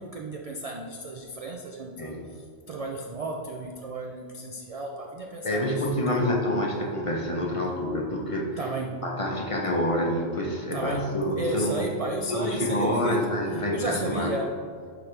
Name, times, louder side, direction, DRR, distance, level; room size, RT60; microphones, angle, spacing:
voice 1, 0.0-6.5 8.6-9.1 10.7-14.6, right 2 dB, 60° right, 1 dB, 0.4 m, -33 dB
voice 2, 5.4-8.5 9.0-11.7 12.3-14.3, left 1 dB, 30° left, -1 dB, 0.7 m, -27 dB
10.5 x 4.0 x 3.3 m, 2.1 s
omnidirectional pair, 1.2 m